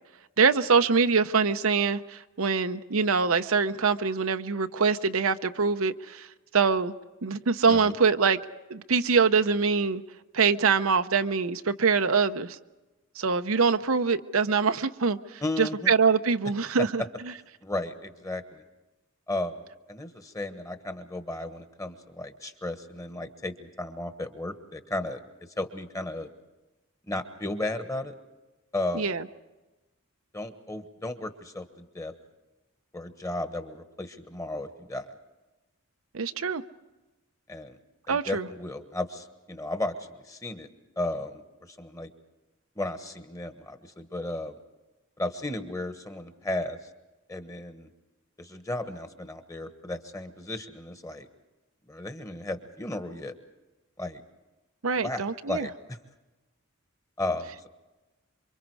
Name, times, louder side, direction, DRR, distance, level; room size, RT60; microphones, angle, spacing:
voice 1, 0.4-6.3 6.5-6.9 7.2-8.4 8.7-10.0 10.3-12.6 13.2-17.0 28.9-29.2 36.1-36.6 38.1-38.5 54.8-55.7, right 5 dB, 80° right, 0.8 m, -24 dB
voice 2, 15.4-15.9 16.8-16.9 17.6-18.6 19.3-19.5 19.9-25.2 25.6-26.3 27.1-28.1 28.7-29.1 30.3-32.1 32.9-35.1 37.5-37.8 38.1-40.0 40.3-40.7 41.0-42.1 42.7-44.6 45.2-46.8 47.3-47.9 48.4-51.3 51.9-53.3 54.0-54.2 55.0-56.0 57.2-57.7, left 2 dB, 15° left, 1.4 m, -34 dB
27.5 x 24.5 x 4.8 m
head